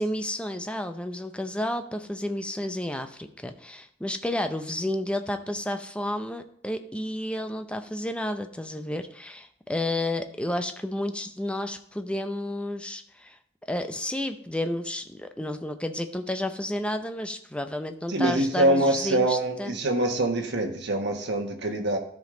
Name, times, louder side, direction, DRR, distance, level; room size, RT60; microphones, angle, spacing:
voice 1, 0.0-13.4 13.7-19.8, left 1 dB, 5° left, 7 dB, 0.6 m, -31 dB
voice 2, 18.1-22.0, right 1 dB, 60° right, 3 dB, 1.3 m, -24 dB
13.5 x 5.3 x 3.8 m, 0.63 s
head